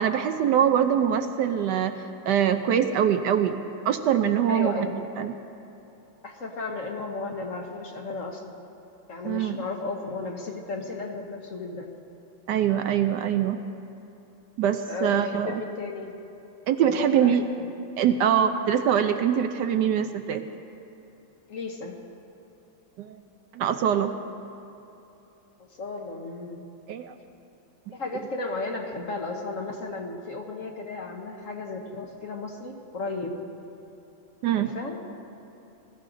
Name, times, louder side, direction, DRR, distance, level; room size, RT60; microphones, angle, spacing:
voice 1, 0.0-3.6 3.8-4.9 5.2-5.3 9.2-9.6 12.5-13.6 14.6-15.6 16.7-17.5 18.0-20.4 23.0-23.2 23.5-24.1 26.9-27.1 27.9-28.0 34.4-34.7, right 9 dB, 70° right, 8 dB, 1.1 m, -23 dB
voice 2, 4.5-4.9 6.2-8.7 9.1-11.9 14.9-16.1 16.8-17.7 21.5-22.0 25.8-26.6 27.9-33.5 34.6-35.0, left 3 dB, 50° left, 2 dB, 1.2 m, -34 dB
20.5 x 13.5 x 3.9 m, 2.9 s
omnidirectional pair, 2.0 m